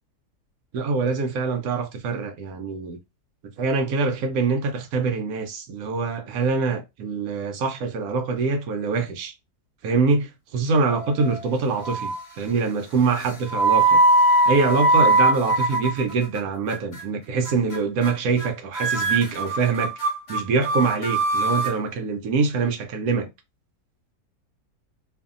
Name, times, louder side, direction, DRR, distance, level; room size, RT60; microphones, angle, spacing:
voice 1, 0.7-3.0 3.4-9.3 9.8-14.0 14.5-19.9 20.3-23.3, right 4 dB, 75° right, 1.0 m, -24 dB
sound 1, 10.9-11.5 11.8-12.3 13.1-16.4 16.7-17.0 17.4-17.8 18.0-18.1 18.4-18.5 18.7-21.7, right 2 dB, 45° left, 1.0 m, -21 dB
2.7 x 2.6 x 2.4 m
omnidirectional pair, 1.7 m